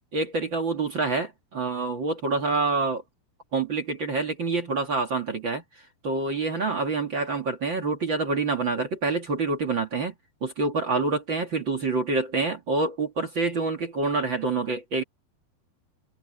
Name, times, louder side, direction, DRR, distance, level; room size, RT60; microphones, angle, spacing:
voice 1, 0.1-3.0 3.5-5.6 6.0-10.1 10.4-15.0, right 3 dB, 40° right, 1.9 m, -27 dB
omnidirectional pair, 5.0 m